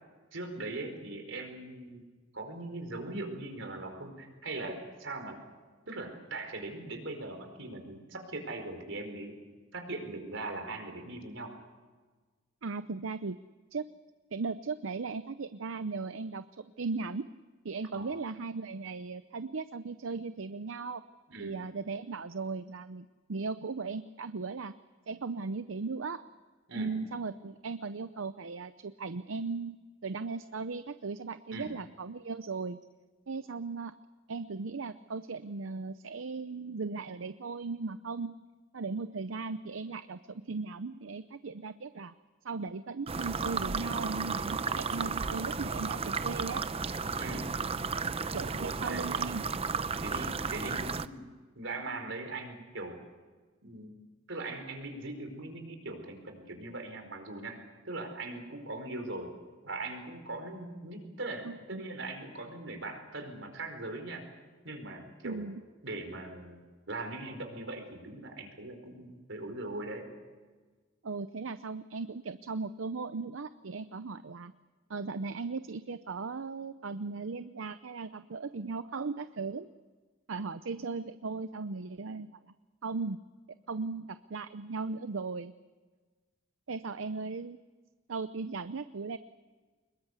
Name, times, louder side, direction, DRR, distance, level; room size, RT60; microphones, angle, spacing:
voice 1, 0.3-2.0 2.3-5.4 5.9-9.4 9.7-11.5 17.9-18.1 21.3-21.5 26.7-26.9 31.5-31.7 47.2-47.5 48.5-49.3 49.9-51.2 51.6-53.0 53.6-53.9 54.3-57.6 57.8-59.3 59.6-64.2 64.6-65.5 65.8-66.6 66.9-70.2, right 2 dB, 70° right, 5 dB, 4.7 m, -40 dB
voice 2, 12.6-13.4 13.7-13.9 14.3-17.3 17.6-21.0 21.4-24.7 25.1-26.2 26.7-29.8 30.0-32.8 33.3-33.9 34.3-38.4 38.7-42.1 42.4-46.6 48.3-49.4 61.4-61.8 65.2-65.6 71.0-74.5 74.9-79.7 80.3-82.4 82.8-83.2 83.7-85.5 86.7-87.6 88.1-89.2, right 4 dB, 90° right, 12 dB, 0.7 m, -37 dB
sound 1, 43.1-51.1, right 4 dB, 30° right, 0.7 m, -33 dB
25.5 x 21.5 x 8.2 m, 1.4 s
head